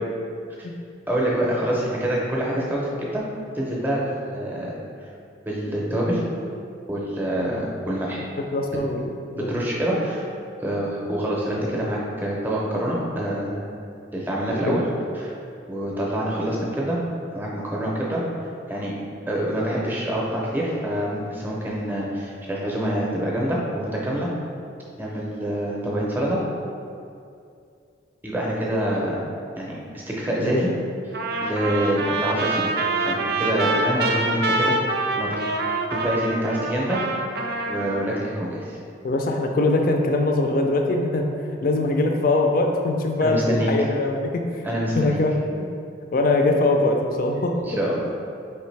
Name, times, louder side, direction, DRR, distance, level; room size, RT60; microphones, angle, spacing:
voice 1, 1.1-3.2 3.5-4.0 4.3-4.7 5.4-6.2 6.9-8.2 9.4-10.2 10.6-13.6 14.1-14.8 15.1-15.3 15.7-17.0 17.3-18.2 18.7-18.9 19.3-24.3 25.0-26.4 28.2-29.2 29.6-30.7 31.4-32.7 33.0-35.3 35.9-37.0 37.7-38.8 43.2-43.7 44.6-45.2 47.6-48.1, right 1 dB, 10° right, -4 dB, 0.6 m, -26 dB
voice 2, 8.4-9.6 14.5-14.8 30.4-30.6 39.0-41.2 41.6-44.6 45.0-45.3 45.6-45.7 46.1-47.6, left 2 dB, 45° left, 3 dB, 0.4 m, -22 dB
Trumpet, 31.1-38.2, right 2 dB, 55° right, 0.3 m, -25 dB
4.7 x 2.9 x 3.2 m, 2.4 s
head